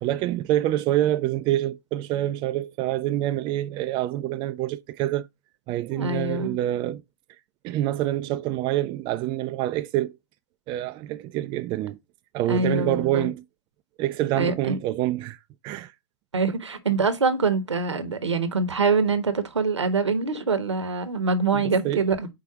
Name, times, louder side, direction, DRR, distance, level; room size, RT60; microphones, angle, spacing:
voice 1, 0.0-5.3 5.7-7.0 7.6-10.1 10.7-12.0 12.3-13.4 14.0-15.4 15.6-15.9 21.5-22.0, right 14 dB, 35° right, 0.4 m, -26 dB
voice 2, 5.9-6.6 12.5-13.3 14.4-14.8 16.3-22.3, right 4 dB, 90° right, 1.0 m, -24 dB
4.9 x 4.0 x 4.8 m
hypercardioid pair, 105°, 15 cm